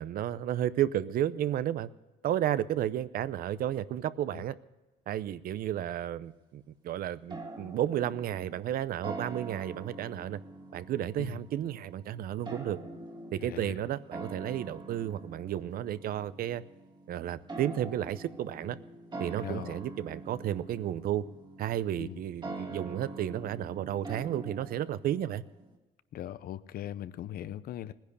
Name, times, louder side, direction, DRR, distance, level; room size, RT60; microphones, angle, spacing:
voice 1, 0.0-1.9 2.2-4.5 5.1-10.4 10.7-12.8 13.3-16.6 17.1-18.8 19.2-21.2 21.6-25.4, right 11 dB, 60° right, 16 dB, 0.7 m, -32 dB
sound 1, 7.3-25.8, right 2 dB, 25° right, 1.9 m, -45 dB
voice 2, 13.4-13.8 19.4-19.8 21.9-22.2 26.1-27.9, left 11 dB, 60° left, 15 dB, 0.7 m, -40 dB
18.0 x 10.5 x 6.7 m, 1.1 s
cardioid pair, 110°, 17 cm